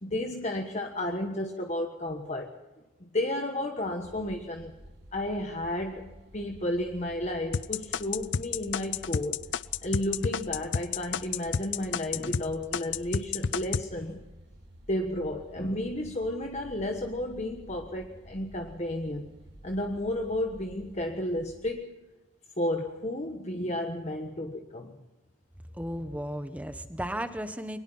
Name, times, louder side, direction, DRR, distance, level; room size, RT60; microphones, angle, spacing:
voice 1, 0.0-2.5 3.0-4.8 5.1-9.4 9.8-14.2 14.9-19.3 19.6-21.9 22.6-25.0, left 1 dB, 35° left, 3 dB, 1.4 m, -32 dB
sound 1, 4.0-21.7, equal, 65° right, 7.0 m, -51 dB
sound 2, 7.5-12.5 12.7-13.9, left 6 dB, 65° left, 0.6 m, -30 dB
voice 2, 25.8-27.8, equal, 5° right, 9 dB, 1.3 m, -34 dB
23.5 x 20.0 x 5.6 m, 1.1 s
head